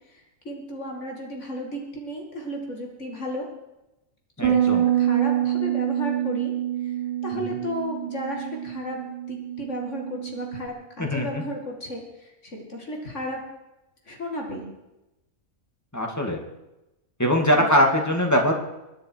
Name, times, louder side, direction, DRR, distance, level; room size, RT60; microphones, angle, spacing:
voice 1, 0.4-3.5 4.4-6.5 6.9-7.0 7.2-13.4 14.1-14.7 17.5-17.7, left 1 dB, 55° left, 1 dB, 2.7 m, -34 dB
voice 2, 4.4-4.8 7.3-7.6 11.0-11.3 15.9-16.4 17.2-18.5, equal, 10° left, 1 dB, 2.1 m, -22 dB
Bass guitar, 4.4-10.7, right 11 dB, 55° right, 0.6 m, -26 dB
25.5 x 10.5 x 4.7 m, 0.96 s
omnidirectional pair, 1.5 m